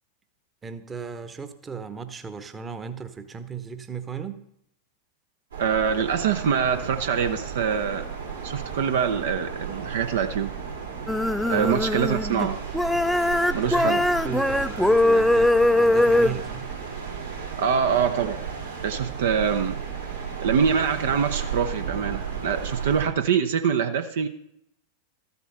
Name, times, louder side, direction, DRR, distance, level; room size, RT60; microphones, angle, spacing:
voice 1, 0.6-4.4 11.5-11.8 13.6-16.7, right 6 dB, 20° right, 10 dB, 1.0 m, -36 dB
sound 1, 5.5-23.1, right 6 dB, 75° right, 4.1 m, -34 dB
voice 2, 5.6-8.0 8.4-10.5 11.5-12.6 13.5-14.0 17.6-18.4 18.8-19.8 20.4-24.3, right 7 dB, 60° right, 9 dB, 0.6 m, -24 dB
sound 2, 11.1-12.5 12.7-16.3, left 1 dB, ahead, 0.4 m, -21 dB
13.5 x 8.1 x 5.6 m, 0.76 s
figure-of-eight pair, 90°, 0 cm